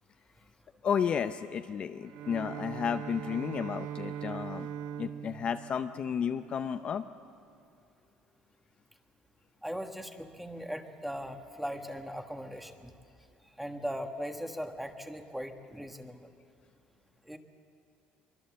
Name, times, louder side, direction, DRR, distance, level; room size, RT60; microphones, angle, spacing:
voice 1, 0.8-4.7 5.0-7.1, left 7 dB, 35° left, 8 dB, 0.6 m, -32 dB
Bowed string instrument, 2.0-7.0, right 9 dB, 70° right, 0.8 m, -41 dB
voice 2, 9.6-12.9 13.4-16.3 17.2-17.4, equal, 5° right, 5 dB, 1.3 m, -39 dB
24.0 x 23.0 x 7.5 m, 2.5 s
cardioid pair, 150°, 3 cm